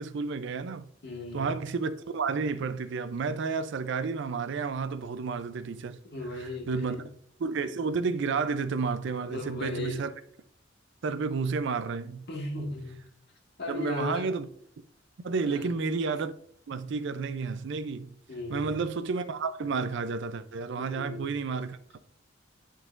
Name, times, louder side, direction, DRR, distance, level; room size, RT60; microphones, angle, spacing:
voice 1, 0.0-0.9 1.3-6.0 6.4-7.0 7.4-10.1 11.0-12.2 13.7-14.5 15.2-16.3 16.7-18.1 18.5-22.0, right 4 dB, 65° right, 0.4 m, -31 dB
voice 2, 1.0-1.6 6.0-7.0 9.2-10.0 12.3-13.0 13.6-14.3 15.4-15.7 18.3-18.8 20.7-21.3, left 2 dB, 60° left, 1.7 m, -36 dB
10.5 x 3.9 x 2.5 m
head